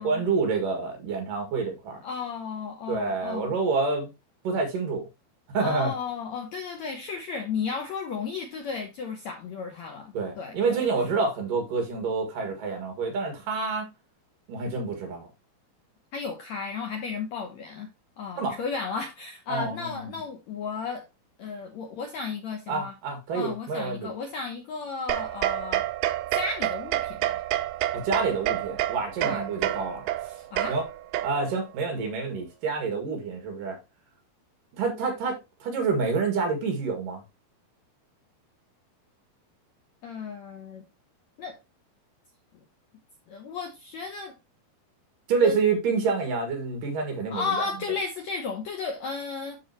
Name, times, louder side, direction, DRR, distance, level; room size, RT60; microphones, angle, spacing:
voice 1, 0.0-2.0 2.9-4.1 4.4-5.1 5.5-5.9 10.1-13.9 14.5-15.3 18.4-18.6 19.5-20.2 22.7-24.1 27.9-30.1 30.7-30.8 31.2-33.8 34.8-37.2 45.3-47.7, right 4 dB, 65° right, 3.4 m, -28 dB
voice 2, 2.0-3.6 5.6-10.9 11.1-11.3 16.1-17.9 18.2-21.0 21.4-22.9 23.3-25.8 26.3-27.4 29.2-29.4 30.5-30.8 40.0-40.8 41.4-41.6 43.3-44.3 45.4-45.6 47.3-49.6, left 5 dB, 70° left, 1.8 m, -34 dB
sound 1, 25.1-31.7, right 14 dB, 80° right, 2.0 m, -29 dB
12.5 x 4.4 x 2.9 m
omnidirectional pair, 4.4 m